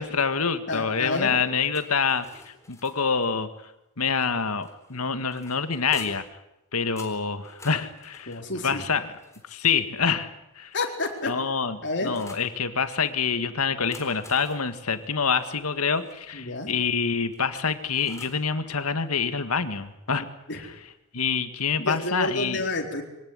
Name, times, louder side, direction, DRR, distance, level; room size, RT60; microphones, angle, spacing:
voice 1, 0.0-3.5 4.0-6.2 6.7-8.4 8.6-9.1 9.5-10.3 10.6-10.7 11.2-20.3 21.1-22.6, left 5 dB, 80° left, 10 dB, 1.8 m, -26 dB
voice 2, 0.7-1.4 8.3-8.8 10.7-11.3 11.8-12.2 16.3-16.7 20.5-20.6 21.8-23.0, left 2 dB, 55° left, 3 dB, 4.2 m, -29 dB
sound 1, 1.7-3.3 4.6-6.4 7.0-9.9 10.7-12.5 13.7-16.2 17.3-18.5, left 3 dB, 15° left, 3.8 m, -49 dB
23.5 x 18.0 x 9.6 m, 0.90 s
head